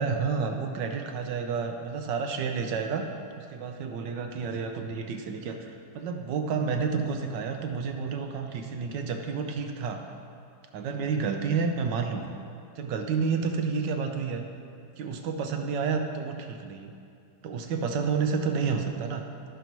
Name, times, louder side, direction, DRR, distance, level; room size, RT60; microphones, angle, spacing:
voice 1, 0.0-3.0 3.4-10.0 10.7-12.3 12.8-14.4 15.0-16.9 17.4-19.2, right 5 dB, 80° right, 5 dB, 1.4 m, -30 dB
15.0 x 5.3 x 3.0 m, 2.4 s
omnidirectional pair, 1.9 m